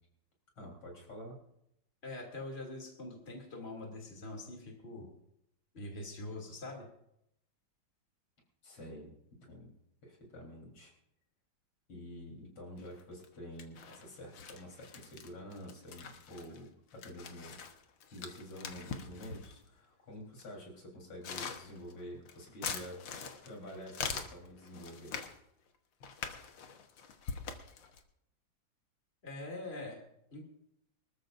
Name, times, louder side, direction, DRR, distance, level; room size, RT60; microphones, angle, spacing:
voice 1, 0.6-1.4 8.6-9.2 9.5-9.7 10.0-10.9 11.9-25.2, equal, 85° left, -1 dB, 4.8 m, -48 dB
voice 2, 2.0-5.1 5.7-6.9 29.2-30.0 30.3-30.4, left 2 dB, 30° left, 0 dB, 3.0 m, -43 dB
sound 1, 12.8-13.3 13.6-19.7 20.4-20.5 21.0-25.4 26.0-28.0, left 6 dB, 65° left, 1.9 m, -43 dB
24.5 x 13.5 x 2.6 m, 0.78 s
omnidirectional pair, 2.3 m